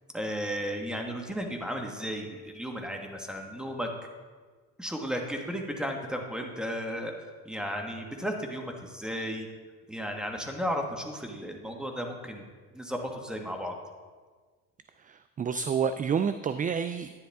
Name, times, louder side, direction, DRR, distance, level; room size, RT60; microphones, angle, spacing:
voice 1, 0.1-3.9 4.8-9.5 9.9-12.4 12.7-13.7, equal, ahead, 2 dB, 1.5 m, -34 dB
voice 2, 15.1-17.1, right 6 dB, 30° right, 11 dB, 0.3 m, -29 dB
10.5 x 10.0 x 3.5 m, 1.5 s
cardioid pair, 90°, 30 cm